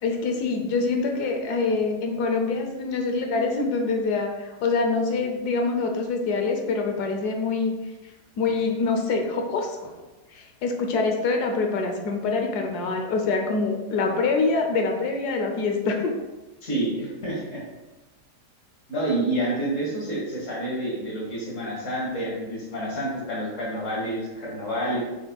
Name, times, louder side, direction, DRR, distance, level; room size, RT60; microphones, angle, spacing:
voice 1, 0.0-7.7 8.4-9.9 10.3-16.1, left 4 dB, 70° left, 3 dB, 1.4 m, -25 dB
voice 2, 16.6-17.6 18.9-25.0, right 1 dB, 45° left, -4 dB, 2.3 m, -28 dB
8.0 x 5.7 x 2.3 m, 1.1 s
omnidirectional pair, 1.8 m